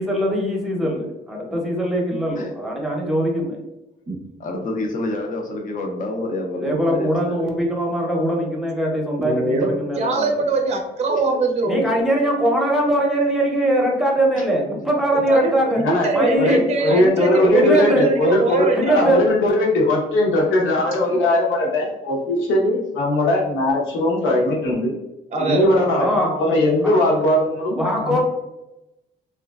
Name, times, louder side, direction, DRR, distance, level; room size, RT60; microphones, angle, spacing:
voice 1, 0.0-3.6 6.5-10.4 11.6-15.8 16.1-16.6 17.5-18.0 18.7-19.2 26.0-26.3 26.8-27.0 27.8-28.2, right 1 dB, ahead, -1 dB, 0.8 m, -21 dB
voice 2, 4.4-7.5 14.4-14.5 24.4-24.6 25.8-25.9, left 2 dB, 40° left, 2 dB, 0.6 m, -28 dB
voice 3, 9.2-11.8 15.1-19.0 25.3-25.7, right 3 dB, 35° right, 3 dB, 0.5 m, -22 dB
voice 4, 16.3-24.9 25.4-28.2, left 1 dB, 80° left, -3 dB, 0.9 m, -19 dB
3.0 x 2.4 x 2.3 m, 0.96 s
cardioid pair, 90°, 20 cm